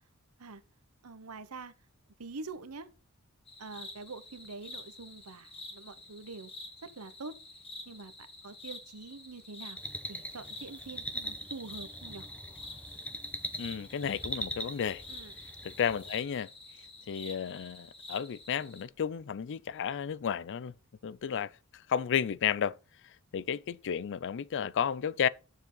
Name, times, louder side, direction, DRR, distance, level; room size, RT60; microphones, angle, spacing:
voice 1, 1.0-1.7 2.2-2.9 3.6-6.5 6.8-7.4 7.9-9.8 10.1-12.3 15.1-15.3, right 3 dB, 80° right, 1.0 m, -45 dB
sound 1, 3.5-18.8, left 2 dB, 25° left, 2.1 m, -49 dB
sound 2, 9.8-16.1, equal, 5° left, 1.2 m, -41 dB
voice 2, 13.6-15.0 15.6-16.5 17.1-20.7 21.0-22.8 23.3-25.3, left 8 dB, 55° left, 0.4 m, -32 dB
9.3 x 7.1 x 3.9 m
head